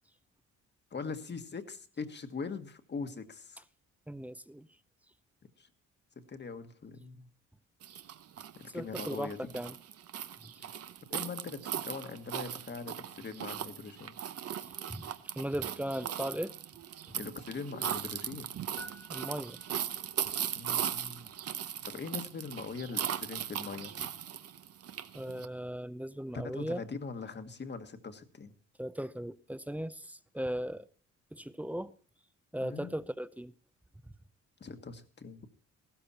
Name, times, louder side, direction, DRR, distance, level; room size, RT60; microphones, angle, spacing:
voice 1, 0.9-3.6 5.6-5.7 6.1-7.3 8.5-9.5 10.6-10.8 11.1-14.2 17.1-18.5 20.5-21.3 21.8-24.1 26.3-28.5 32.6-33.0 34.6-35.5, left 4 dB, 35° left, 1.6 m, -42 dB
voice 2, 4.1-4.7 8.7-9.8 10.6-10.7 14.9-15.1 15.4-16.5 17.1-17.2 19.1-19.6 25.1-26.8 28.8-30.9 31.3-31.9 32.5-33.5, equal, 5° right, 0.6 m, -37 dB
sound 1, 7.8-25.5, right 9 dB, 55° right, 0.9 m, -38 dB
sound 2, 18.8-20.2, left 2 dB, 70° left, 2.8 m, -52 dB
15.0 x 13.0 x 4.2 m
cardioid pair, 90°, 30 cm